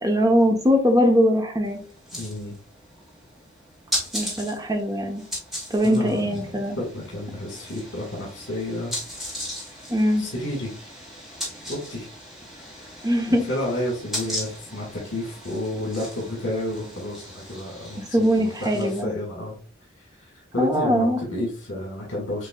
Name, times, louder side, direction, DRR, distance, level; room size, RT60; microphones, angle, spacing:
voice 1, 0.0-1.8 4.1-5.2 5.7-6.8 9.9-10.2 13.0-13.4 18.1-19.1 20.6-21.2, equal, 20° right, 3 dB, 0.9 m, -21 dB
sound 1, 1.6-19.0, equal, ahead, 1.6 m, -37 dB
voice 2, 2.2-2.5 5.8-6.4 6.8-8.9 10.2-10.7 11.7-12.1 12.5-13.0 13.3-19.6 20.0-22.5, left 1 dB, 80° left, -3 dB, 1.7 m, -31 dB
6.6 x 3.1 x 2.3 m, 0.39 s
head